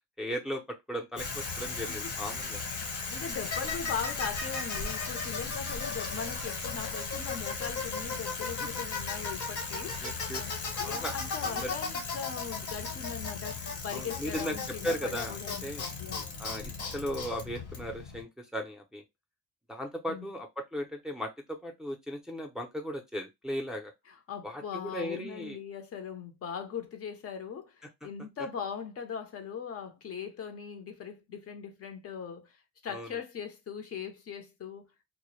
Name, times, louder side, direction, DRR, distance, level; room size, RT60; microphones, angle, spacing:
voice 1, 0.2-0.6 0.9-2.6 10.0-10.4 10.7-11.1 11.4-11.7 13.9-14.6 14.8-15.9 16.4-19.0 19.7-23.9 24.4-25.6 32.9-33.2, equal, ahead, 0.4 m, -37 dB
Bicycle, 1.2-18.2, left 4 dB, 75° left, 1.1 m, -36 dB
voice 2, 3.1-15.7 16.0-16.4 20.1-20.3 24.1-34.9, left 7 dB, 50° left, 0.6 m, -40 dB
2.1 x 2.0 x 2.9 m
cardioid pair, 90°, 30 cm